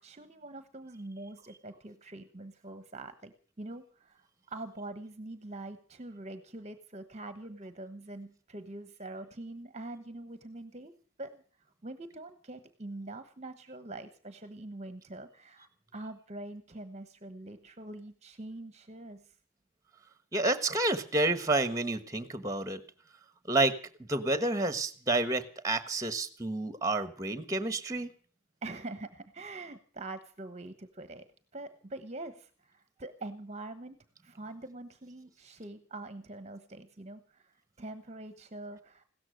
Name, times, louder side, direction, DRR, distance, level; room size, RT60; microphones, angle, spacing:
voice 1, 0.0-10.9 11.2-11.4 11.8-19.3 28.6-31.3 31.5-34.0 34.2-37.5 37.8-39.0, right 2 dB, 30° right, 10 dB, 1.1 m, -44 dB
voice 2, 20.3-22.8 23.5-28.1, right 2 dB, 15° right, 12 dB, 1.3 m, -29 dB
16.5 x 13.5 x 6.4 m, 0.43 s
head